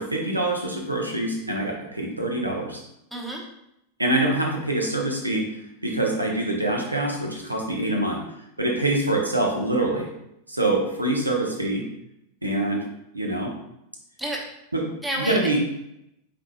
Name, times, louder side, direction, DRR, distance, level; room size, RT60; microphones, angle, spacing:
voice 1, 0.0-2.8 4.0-5.5 5.8-8.2 8.6-10.1 10.5-11.9 12.4-12.8 13.1-13.5 14.7-14.8 15.2-15.6, right 2 dB, 85° right, 0 dB, 0.8 m, -25 dB
voice 2, 3.1-3.4 14.2-14.4 15.0-15.6, right 1 dB, 5° right, -2 dB, 0.9 m, -30 dB
4.9 x 4.3 x 2.3 m, 0.81 s
figure-of-eight pair, 90°, 0 cm